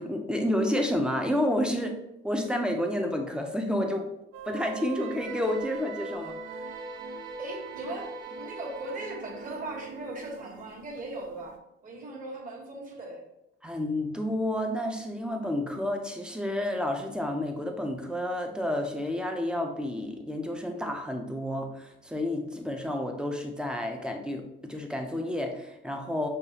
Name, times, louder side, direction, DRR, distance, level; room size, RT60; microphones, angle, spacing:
voice 1, 0.0-2.0 2.2-4.1 4.5-6.4 13.6-26.3, left 1 dB, 5° right, 3 dB, 0.5 m, -30 dB
sound 1, 4.3-11.6, right 4 dB, 65° right, 0.6 m, -41 dB
voice 2, 7.4-11.5 11.8-13.2, right 2 dB, 40° right, -1 dB, 1.3 m, -38 dB
6.5 x 2.4 x 2.8 m, 0.86 s
cardioid pair, 145°, 21 cm